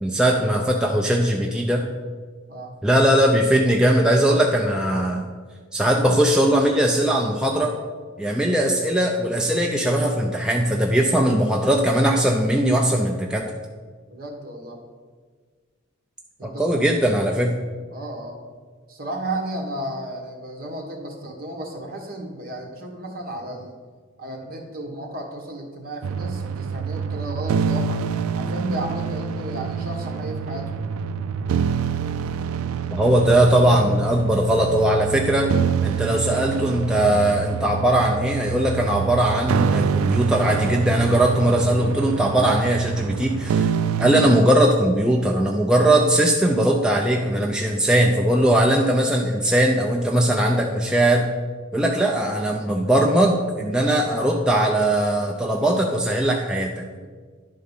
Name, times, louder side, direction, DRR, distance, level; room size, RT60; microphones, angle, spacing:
voice 1, 0.0-1.8 2.8-5.3 5.7-7.8 8.2-13.5 16.4-17.5 32.9-35.5 35.8-43.7 44.0-51.3 51.7-56.8, right 1 dB, 5° right, -1 dB, 0.4 m, -20 dB
voice 2, 14.1-14.8 16.4-16.7 17.9-18.4 18.9-23.7 24.2-28.0 28.3-30.9, right 1 dB, 45° right, 1 dB, 1.3 m, -33 dB
sound 1, 26.0-44.4, right 6 dB, 85° right, 0.3 m, -26 dB
10.5 x 3.8 x 5.4 m, 1.5 s
head